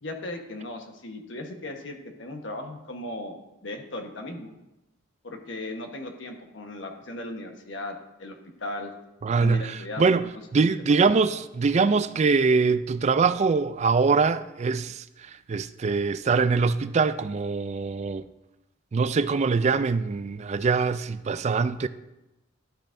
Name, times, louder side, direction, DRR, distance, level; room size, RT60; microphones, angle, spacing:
voice 1, 0.0-4.5 5.2-9.0 9.4-10.3 10.6-10.9, left 2 dB, 65° left, 1.2 m, -37 dB
voice 2, 9.2-18.3 18.9-21.9, right 4 dB, 35° right, 0.3 m, -23 dB
12.0 x 8.8 x 2.6 m
head